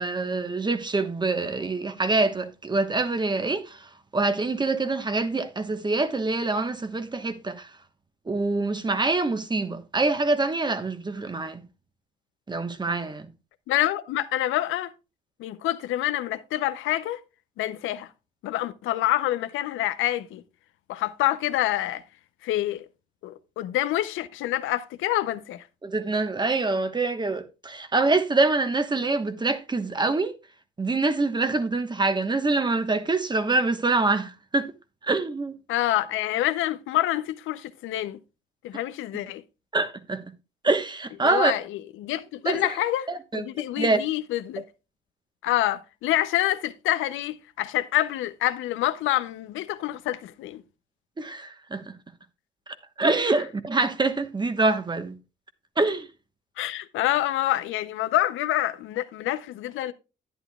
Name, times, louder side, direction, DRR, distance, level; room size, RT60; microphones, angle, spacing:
voice 1, 0.0-7.7 8.3-11.6 12.5-13.3 25.8-30.4 30.8-34.7 35.0-35.5 39.7-40.2 40.6-41.5 42.4-42.6 43.1-43.4 43.8-44.0 51.2-51.9 53.0-55.1 55.8-56.1, right 3 dB, 20° right, 1.1 m, -25 dB
voice 2, 13.7-14.9 15.4-17.2 17.6-18.1 18.4-20.4 20.9-22.0 22.4-22.9 23.2-25.6 35.7-38.2 38.6-39.4 41.2-41.6 42.0-43.1 43.3-44.6 45.4-50.6 56.6-59.9, left 14 dB, 90° left, 0.7 m, -27 dB
11.0 x 9.9 x 2.3 m
cardioid pair, 90°, 20 cm